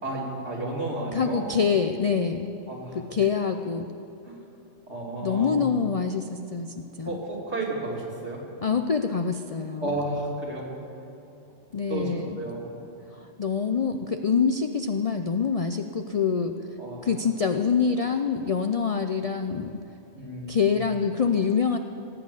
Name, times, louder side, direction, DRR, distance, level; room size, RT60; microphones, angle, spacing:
voice 1, 0.0-1.5 2.7-3.0 4.2-4.4 4.9-5.6 7.0-8.5 9.8-10.8 11.9-12.1 12.4-12.6 16.8-17.1 20.1-20.8, right 2 dB, 65° right, -3 dB, 3.1 m, -32 dB
voice 2, 1.1-2.5 2.9-3.9 5.2-7.2 8.6-10.0 11.7-12.4 13.1-16.5 17.0-19.8 20.5-21.8, left 6 dB, 50° left, 7 dB, 0.4 m, -25 dB
18.0 x 8.5 x 8.3 m, 2.9 s
omnidirectional pair, 1.3 m